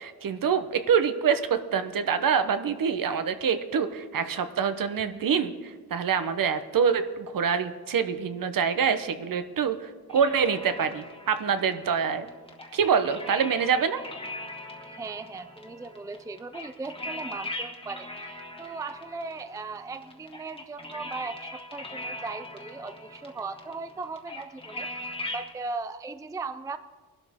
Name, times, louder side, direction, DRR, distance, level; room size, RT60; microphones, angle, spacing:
voice 1, 0.0-12.3 12.7-14.0, right 6 dB, 55° right, 10 dB, 1.0 m, -26 dB
sound 1, 10.1-25.5, left 1 dB, 15° left, 1.7 m, -41 dB
voice 2, 14.8-26.8, right 4 dB, 10° right, 11 dB, 0.4 m, -38 dB
21.5 x 12.0 x 3.6 m, 1.4 s
cardioid pair, 105°, 39 cm